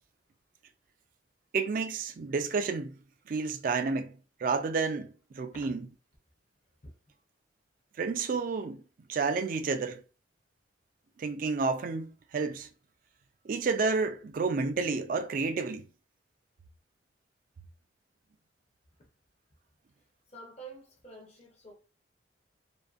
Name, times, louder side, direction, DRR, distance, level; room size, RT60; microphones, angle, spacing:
voice 1, 1.5-3.0 3.3-5.9 8.0-8.8 9.1-10.0 11.2-12.7 13.4-15.9, right 4 dB, 45° right, 0.3 m, -30 dB
voice 2, 20.3-21.7, right 3 dB, 35° left, 0.6 m, -48 dB
2.5 x 2.5 x 2.4 m
head